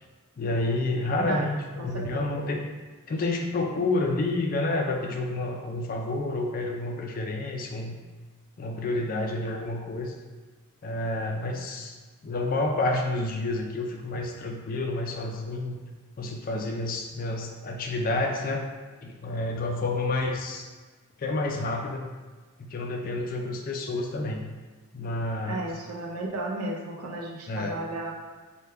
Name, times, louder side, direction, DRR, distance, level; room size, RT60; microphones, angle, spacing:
voice 1, 0.4-2.6 3.1-8.0 8.6-10.2 10.8-12.0 12.2-15.8 16.2-18.6 19.0-20.7 21.2-22.1 22.6-24.5 24.9-25.7 27.5-27.8, left 2 dB, 40° left, 2 dB, 0.3 m, -29 dB
voice 2, 1.8-2.3 25.5-28.1, right 2 dB, 80° right, 0 dB, 0.6 m, -34 dB
3.4 x 2.2 x 3.2 m, 1.3 s
head